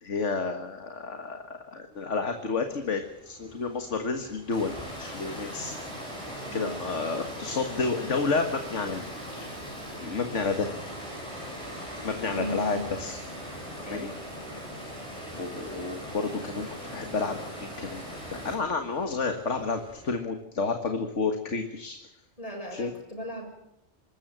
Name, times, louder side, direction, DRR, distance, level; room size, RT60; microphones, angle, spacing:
voice 1, 0.0-5.7 6.5-9.0 10.0-10.7 12.0-13.2 13.9-14.1 15.4-18.0 18.3-22.0 22.7-22.9, left 4 dB, 80° left, 6 dB, 2.0 m, -30 dB
sound 1, 1.9-20.2, equal, 5° right, 6.3 m, -52 dB
Water, 4.5-18.5, equal, 25° right, 7.7 m, -39 dB
voice 2, 6.4-7.0 12.3-12.8 13.8-14.2 22.4-23.5, equal, 30° left, 1 dB, 6.5 m, -37 dB
25.5 x 14.0 x 9.0 m, 0.82 s
omnidirectional pair, 1.2 m